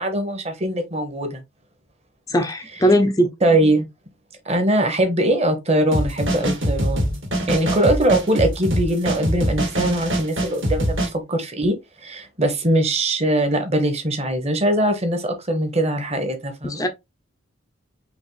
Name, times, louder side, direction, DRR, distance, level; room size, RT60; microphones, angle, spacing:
voice 1, 0.0-1.4 3.4-3.8 4.5-7.2 7.5-16.8, right 1 dB, 30° right, 1.1 m, -21 dB
voice 2, 2.3-3.3 16.6-16.9, equal, 15° left, 0.5 m, -19 dB
sound 1, 5.9-11.1, equal, 70° right, 2.4 m, -23 dB
5.2 x 2.9 x 3.1 m
head